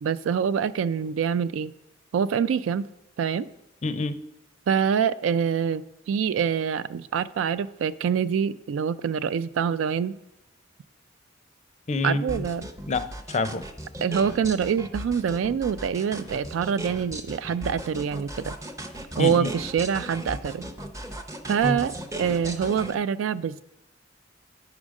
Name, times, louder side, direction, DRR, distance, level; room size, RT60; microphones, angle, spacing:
voice 1, 0.0-1.7 2.1-2.9 3.2-3.5 4.7-10.2 12.0-12.7 14.0-18.6 19.2-20.6 21.5-23.6, right 7 dB, 80° right, 14 dB, 0.3 m, -25 dB
voice 2, 3.8-4.2 11.9-12.4 12.9-13.6 19.2-19.5 21.6-21.8, left 2 dB, 35° left, 12 dB, 0.4 m, -27 dB
sound 1, 12.3-22.9, right 1 dB, 15° right, 0.6 m, -37 dB
9.4 x 4.9 x 6.3 m, 0.88 s
head